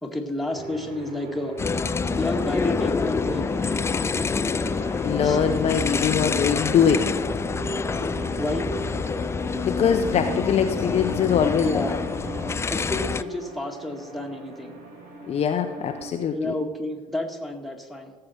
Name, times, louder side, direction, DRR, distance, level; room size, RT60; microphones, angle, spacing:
voice 1, 0.0-1.6 2.2-3.5 5.2-5.4 8.4-8.7 11.6-12.0 12.7-14.8 16.3-18.1, left 1 dB, ahead, 1 dB, 2.0 m, -30 dB
sound 1, 0.5-16.1, right 2 dB, 50° right, 2.5 m, -38 dB
sound 2, 1.6-13.2, left 5 dB, 15° left, 0.4 m, -27 dB
voice 2, 5.0-7.1 9.6-11.8 15.3-16.4, left 7 dB, 35° left, 6 dB, 0.8 m, -22 dB
16.5 x 7.7 x 4.4 m, 1.4 s
figure-of-eight pair, 65°, 17 cm